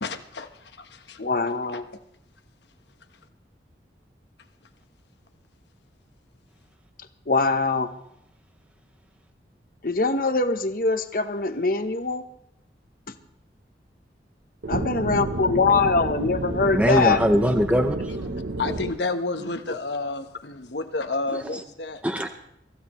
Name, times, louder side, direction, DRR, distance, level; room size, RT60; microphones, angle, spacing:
voice 1, 0.0-1.2 1.7-1.8 18.2-22.0, left 3 dB, 75° left, 1.1 m, -31 dB
voice 2, 1.2-1.8 7.3-7.9 9.8-12.2 14.7-17.2, left 4 dB, 50° left, 1.0 m, -23 dB
sound 1, 14.6-18.9, right 2 dB, 90° right, 0.9 m, -30 dB
voice 3, 16.6-18.1 21.4-21.6 22.0-22.3, equal, 10° right, 0.6 m, -22 dB
23.5 x 15.0 x 3.1 m
head